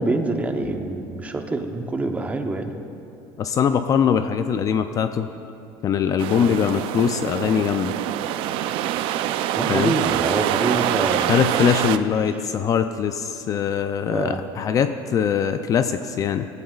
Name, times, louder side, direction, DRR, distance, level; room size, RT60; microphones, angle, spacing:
voice 1, 0.0-2.7 6.3-6.6 9.6-11.4 12.3-12.4 14.1-14.4, right 2 dB, 15° right, 5 dB, 0.8 m, -26 dB
voice 2, 3.4-5.3 5.8-7.9 9.7-9.9 11.3-16.5, left 8 dB, 35° left, 9 dB, 0.4 m, -22 dB
sound 1, 6.2-12.0, right 12 dB, 60° right, 0.5 m, -25 dB
16.5 x 15.0 x 2.4 m, 2.7 s
cardioid pair, 135°, 10 cm